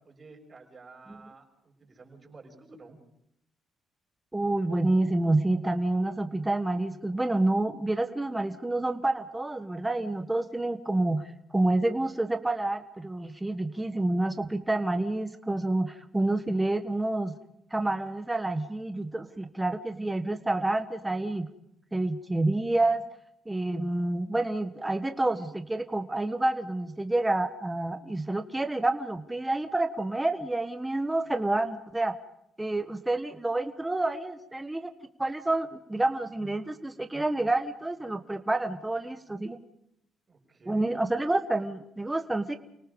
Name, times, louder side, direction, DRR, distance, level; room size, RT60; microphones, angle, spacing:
voice 1, 0.0-3.0 40.3-40.9, right 3 dB, 35° right, 2 dB, 6.8 m, -51 dB
voice 2, 4.3-17.3 17.7-21.5 21.9-23.0 23.4-32.1 32.6-34.9 35.2-39.6 40.7-42.5, right 2 dB, 10° right, 7 dB, 1.5 m, -28 dB
30.0 x 18.5 x 5.4 m, 0.77 s
cardioid pair, 90°, 0 cm